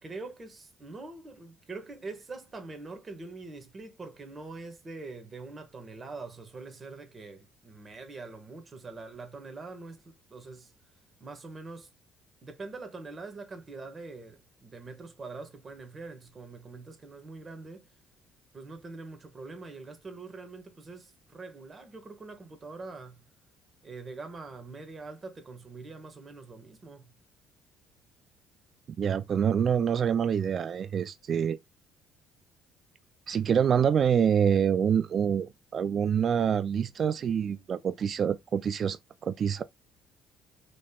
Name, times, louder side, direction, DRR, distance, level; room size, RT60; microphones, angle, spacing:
voice 1, 0.0-10.7 11.2-11.9 12.4-17.9 18.5-23.2 23.8-27.1, right 3 dB, 35° right, 1.6 m, -44 dB
voice 2, 29.0-31.6 33.3-39.0 39.2-39.6, right 8 dB, 50° right, 0.3 m, -26 dB
5.0 x 3.5 x 2.3 m
supercardioid pair, 75°, 0 cm